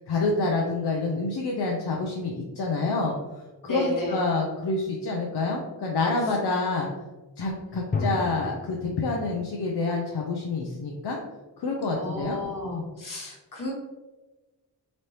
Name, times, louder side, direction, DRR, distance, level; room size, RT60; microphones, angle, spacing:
voice 1, 0.1-3.2 3.6-6.9 7.4-11.2 11.6-12.4 12.6-12.9, left 3 dB, 70° left, -1 dB, 0.6 m, -27 dB
voice 2, 3.6-4.2 7.6-8.1 11.9-13.7, left 1 dB, 50° left, -3 dB, 1.4 m, -34 dB
sound 1, 7.9-9.8, left 3 dB, 25° left, 0.4 m, -35 dB
4.0 x 2.9 x 3.2 m, 1.1 s
wide cardioid pair, 85°, 41 cm